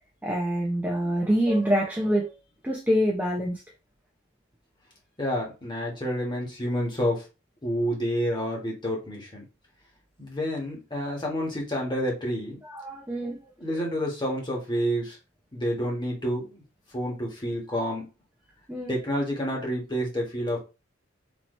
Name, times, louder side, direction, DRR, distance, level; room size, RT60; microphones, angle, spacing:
voice 1, 0.2-2.3 2.6-3.6 12.6-13.4 18.7-19.0, equal, 10° right, -1 dB, 0.7 m, -25 dB
voice 2, 5.2-7.2 7.6-9.4 10.2-12.6 13.6-15.2 15.5-16.6 16.9-18.1 18.9-20.6, equal, 20° left, -2 dB, 1.5 m, -29 dB
4.2 x 3.0 x 3.1 m, 0.29 s
head